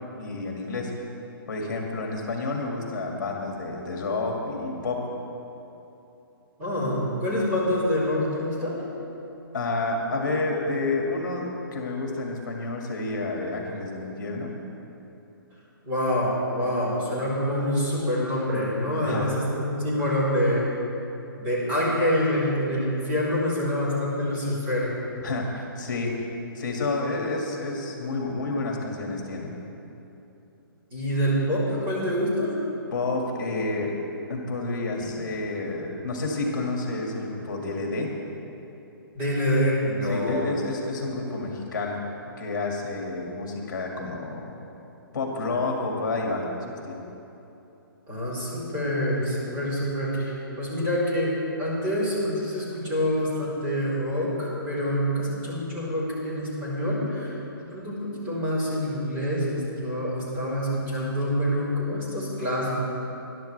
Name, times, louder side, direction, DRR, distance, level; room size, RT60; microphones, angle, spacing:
voice 1, 0.2-0.9 1.5-5.0 9.5-14.6 19.0-19.3 25.2-26.1 26.5-29.5 32.9-33.9 34.3-38.1 40.0-42.0 42.4-44.5 45.1-47.0, left 3 dB, 55° left, 0 dB, 2.1 m, -29 dB
voice 2, 6.6-8.8 15.8-20.7 21.4-24.9 30.9-32.6 35.0-35.2 39.1-40.4 48.1-51.3 51.6-62.8, equal, 20° right, -9 dB, 3.7 m, -26 dB
21.0 x 11.5 x 3.4 m, 3.0 s
hypercardioid pair, 175°, 12 cm